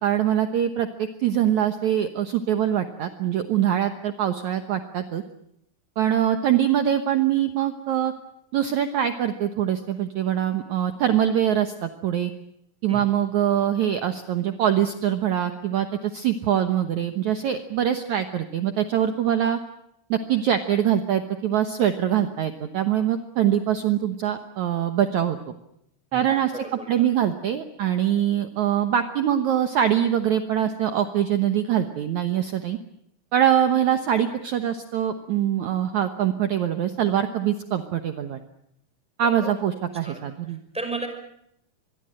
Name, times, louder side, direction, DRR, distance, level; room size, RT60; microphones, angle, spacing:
voice 1, 0.0-5.2 6.0-8.1 8.5-12.3 12.8-15.9 16.1-19.6 20.1-25.4 26.1-26.5 26.9-32.8 33.3-38.4 39.2-40.6, right 10 dB, 60° right, 8 dB, 2.1 m, -23 dB
voice 2, 26.5-27.0 39.2-39.5 40.0-40.2 40.5-41.1, right 2 dB, ahead, 6 dB, 5.3 m, -34 dB
25.5 x 22.5 x 7.7 m, 0.76 s
omnidirectional pair, 4.5 m